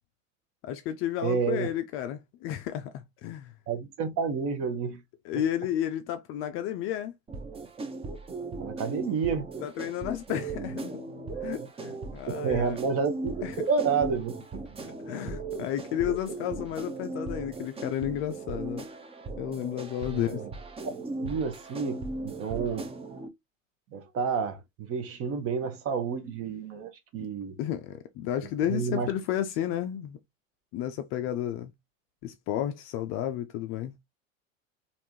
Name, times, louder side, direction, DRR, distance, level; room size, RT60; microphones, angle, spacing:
voice 1, 0.6-3.5 5.2-7.1 9.6-11.0 11.4-12.8 13.4-13.7 14.8-18.9 19.4-20.5 27.2-27.3 27.6-30.2 30.7-31.7 32.2-33.9, left 11 dB, 35° left, 0.4 m, -32 dB
voice 2, 1.2-1.7 3.7-5.0 8.6-9.4 12.4-13.4 13.7-14.3 20.1-20.4 21.2-22.9 23.9-27.6 28.7-29.1, right 5 dB, 35° right, 0.9 m, -29 dB
sound 1, 7.3-23.3, right 3 dB, 15° right, 0.5 m, -38 dB
3.4 x 2.6 x 2.7 m
hypercardioid pair, 85°, 40 cm